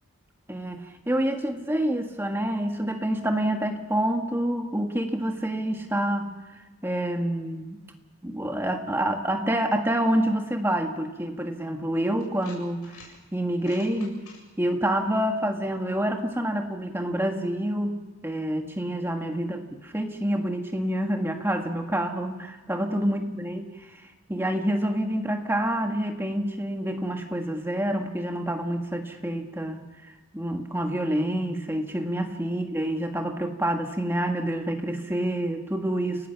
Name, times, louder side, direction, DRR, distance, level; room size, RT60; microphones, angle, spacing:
voice 1, 0.5-6.4 6.8-7.8 8.2-14.2 14.6-23.7 24.3-29.8 30.3-36.3, right 1 dB, 10° right, 3 dB, 1.8 m, -27 dB
sound 1, 11.4-11.5 12.2-13.1 13.5-14.4, left 4 dB, 90° left, 7.8 m, -49 dB
29.5 x 18.5 x 5.9 m, 1.2 s
head